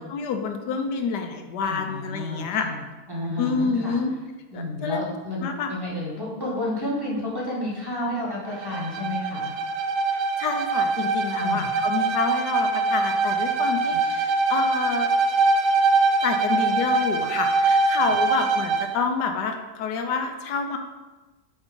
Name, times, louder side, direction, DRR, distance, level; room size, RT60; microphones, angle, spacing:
voice 1, 0.0-2.7 3.4-4.1 4.5-5.0 5.4-5.7 10.4-15.1 16.2-20.8, left 5 dB, 75° left, 5 dB, 1.3 m, -28 dB
voice 2, 1.6-2.8 3.1-4.0 4.5-9.5 11.4-11.7, left 1 dB, 15° right, -6 dB, 1.4 m, -31 dB
Bowed string instrument, 8.5-19.0, right 3 dB, 70° right, 0.7 m, -23 dB
7.1 x 4.4 x 3.8 m, 1.2 s
omnidirectional pair, 1.8 m